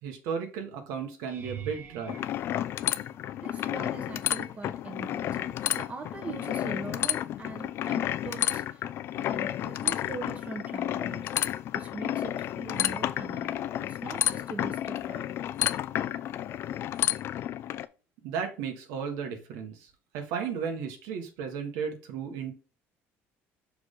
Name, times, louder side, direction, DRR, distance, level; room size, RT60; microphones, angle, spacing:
voice 1, 0.0-2.2 18.2-22.5, right 6 dB, 90° right, 1.7 m, -34 dB
sound 1, 1.3-3.5 4.2-4.7 5.0-5.2 9.5-9.6, right 9 dB, 45° right, 1.2 m, -45 dB
sound 2, 2.1-17.9, left 12 dB, 50° left, 0.4 m, -31 dB
voice 2, 3.4-8.8 9.1-11.3 11.7-15.4, right 3 dB, 25° right, 1.2 m, -42 dB
6.2 x 4.8 x 3.8 m
cardioid pair, 150°, 5 cm